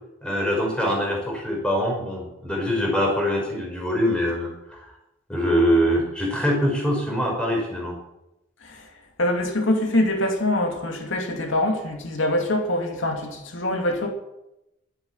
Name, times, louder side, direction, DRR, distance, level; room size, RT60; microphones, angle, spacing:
voice 1, 0.2-4.9 5.3-8.0, equal, 5° left, -1 dB, 5.1 m, -23 dB
voice 2, 9.2-14.1, left 1 dB, 80° left, 3 dB, 2.6 m, -24 dB
12.0 x 10.5 x 9.8 m, 0.89 s
head